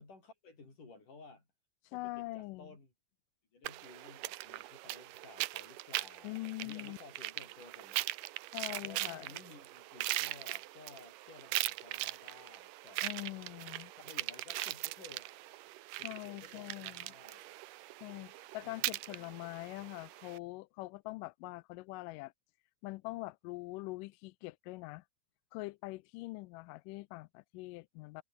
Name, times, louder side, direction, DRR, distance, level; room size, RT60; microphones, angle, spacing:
voice 1, 0.0-1.5 1.9-2.9 3.5-13.0 14.0-15.3 16.0-17.5 18.6-19.5 19.8-20.0, left 3 dB, 60° left, 9.1 m, -56 dB
voice 2, 1.9-2.7 6.2-7.0 8.5-9.3 13.0-13.9 16.0-17.1 18.0-22.3 22.8-25.0 25.5-28.2, left 21 dB, 80° left, 2.0 m, -43 dB
sound 1, 3.6-20.4, right 17 dB, 80° right, 2.3 m, -40 dB
omnidirectional pair, 4.1 m